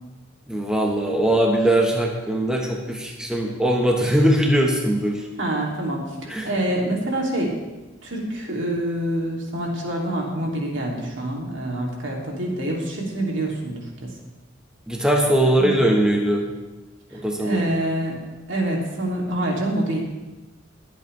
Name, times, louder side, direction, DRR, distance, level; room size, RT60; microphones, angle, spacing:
voice 1, 0.5-5.2 6.3-6.5 14.9-16.5 17.1-17.6, right 1 dB, 5° right, 0 dB, 1.2 m, -20 dB
voice 2, 5.4-7.6 8.0-14.1 15.4-15.8 17.4-18.2 18.5-20.0, right 1 dB, 65° right, -1 dB, 2.9 m, -26 dB
22.0 x 8.2 x 3.4 m, 1.2 s
head